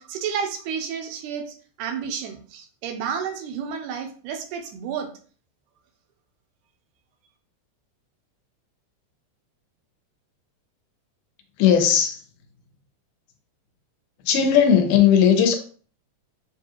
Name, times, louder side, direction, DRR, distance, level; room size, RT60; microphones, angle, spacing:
voice 1, 0.0-5.1, right 7 dB, 85° right, 2.2 m, -31 dB
voice 2, 11.6-12.2 14.3-15.6, left 8 dB, 85° left, 2.2 m, -17 dB
7.0 x 2.4 x 2.9 m
omnidirectional pair, 3.6 m